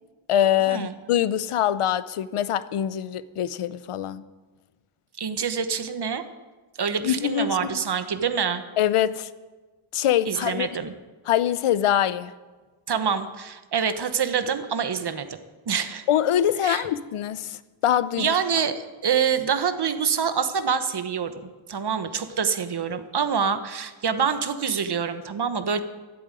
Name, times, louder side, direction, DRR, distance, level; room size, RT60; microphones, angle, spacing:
voice 1, 0.3-4.2 7.0-7.8 8.8-9.3 9.9-10.7 11.3-12.3 16.1-18.4, left 10 dB, 90° left, 16 dB, 0.7 m, -24 dB
voice 2, 5.2-6.2 6.8-8.6 10.3-10.9 12.9-15.3 15.7-16.0 16.6-16.9 18.2-25.8, right 6 dB, 50° right, 10 dB, 1.1 m, -26 dB
14.0 x 7.9 x 9.1 m, 1.3 s
wide cardioid pair, 125°, 50 cm